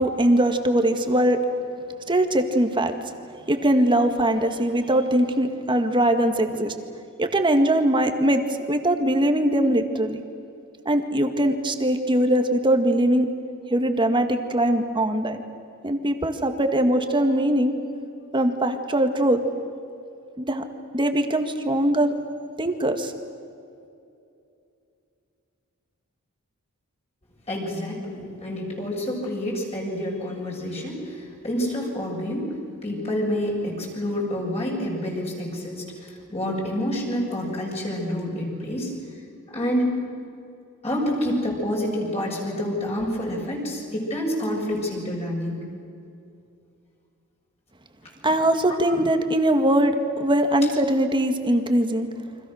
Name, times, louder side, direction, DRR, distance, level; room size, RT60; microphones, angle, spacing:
voice 1, 0.0-1.4 2.1-2.9 3.5-6.7 7.2-8.4 8.7-10.2 10.9-13.3 13.7-15.4 15.8-17.7 18.3-19.4 20.4-20.6 20.9-22.1 22.6-23.1 48.2-52.1, right 1 dB, 20° right, 6 dB, 1.9 m, -21 dB
voice 2, 27.5-32.5 32.8-38.9 39.5-39.9 40.8-45.7, left 1 dB, 30° left, -2 dB, 6.9 m, -28 dB
30.0 x 25.0 x 6.5 m, 2.6 s
head